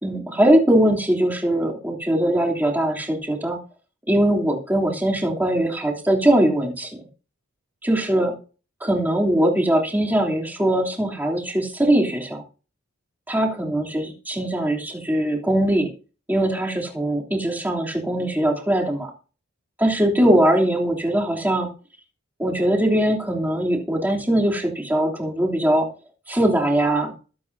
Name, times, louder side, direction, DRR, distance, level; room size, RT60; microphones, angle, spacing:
voice 1, 0.0-3.6 4.1-6.9 7.8-8.3 8.8-12.4 13.3-15.9 16.3-19.1 19.8-21.7 22.4-25.9 26.3-27.1, right 1 dB, 10° right, -2 dB, 3.1 m, -21 dB
23.0 x 8.5 x 2.7 m, 0.35 s
head